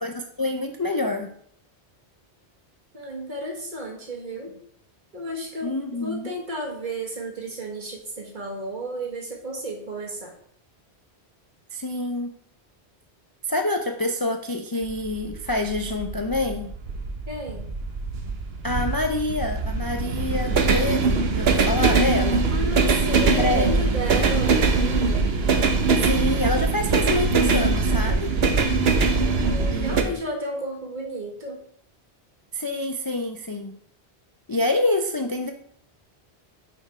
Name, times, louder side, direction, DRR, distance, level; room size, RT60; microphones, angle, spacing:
voice 1, 0.0-1.3 5.6-6.3 11.7-12.3 13.4-16.7 18.6-22.5 23.1-23.9 26.0-28.3 29.7-30.1 32.5-33.8 34.5-35.5, left 2 dB, 35° left, 4 dB, 0.3 m, -27 dB
voice 2, 2.9-4.5 5.1-5.7 6.0-10.3 17.3-17.7 22.5-25.3 29.2-31.6, right 1 dB, 45° right, 0 dB, 1.7 m, -32 dB
sound 1, 14.8-30.0, right 4 dB, 65° right, 1.0 m, -22 dB
6.4 x 4.6 x 4.8 m, 0.64 s
omnidirectional pair, 1.1 m